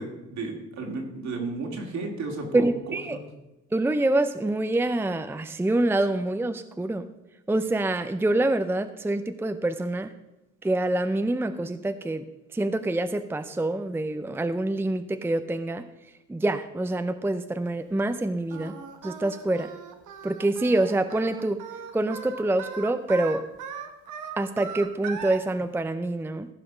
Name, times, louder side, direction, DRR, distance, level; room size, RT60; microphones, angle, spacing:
voice 1, 0.0-3.2, right 3 dB, 65° right, 2 dB, 2.7 m, -33 dB
voice 2, 2.5-3.2 3.7-7.1 7.5-10.1 10.6-12.2 12.5-15.8 16.3-18.7 19.0-19.7 20.2-21.6 21.9-23.4 24.4-26.5, right 2 dB, 10° right, 10 dB, 0.6 m, -26 dB
Singing, 18.5-25.4, right 7 dB, 80° right, 1.3 m, -39 dB
14.5 x 5.1 x 6.2 m, 0.96 s
cardioid pair, 90°, 30 cm